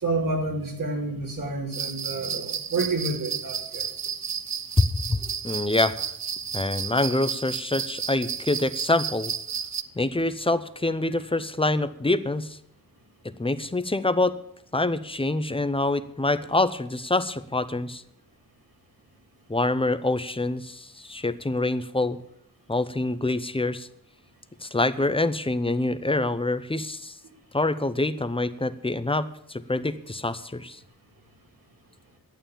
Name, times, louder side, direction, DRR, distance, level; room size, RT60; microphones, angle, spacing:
voice 1, 0.0-3.9, right 2 dB, 65° right, 0 dB, 3.1 m, -29 dB
sound 1, 1.7-9.8, right 7 dB, 50° right, 0.6 m, -32 dB
voice 2, 4.8-6.1 6.5-9.3 10.0-12.6 13.4-14.4 14.7-18.0 19.5-22.2 22.7-23.9 24.6-27.2 27.5-30.8, left 2 dB, 15° left, 12 dB, 0.7 m, -26 dB
11.5 x 8.7 x 7.2 m, 0.74 s
wide cardioid pair, 115°, 35 cm